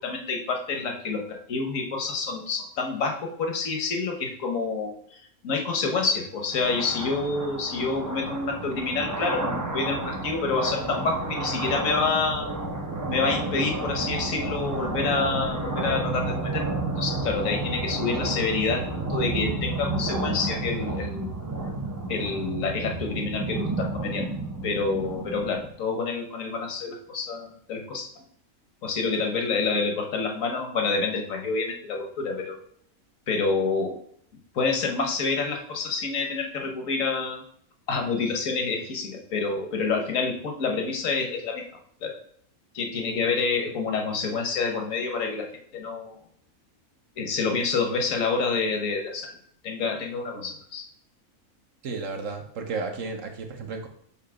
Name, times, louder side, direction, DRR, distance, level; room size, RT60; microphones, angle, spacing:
voice 1, 0.0-12.5 13.0-16.7 17.0-21.3 22.1-24.3 24.6-28.2 28.8-32.6 33.3-34.0 34.5-37.4 37.9-41.7 42.0-42.2 42.7-46.2 47.2-49.3 49.6-50.9, left 4 dB, 70° left, 3 dB, 1.4 m, -28 dB
sound 1, 6.5-25.7, right 2 dB, 30° right, 0.4 m, -31 dB
voice 2, 51.8-53.9, right 4 dB, 65° right, 4 dB, 1.2 m, -33 dB
6.9 x 2.8 x 5.0 m, 0.64 s
omnidirectional pair, 1.5 m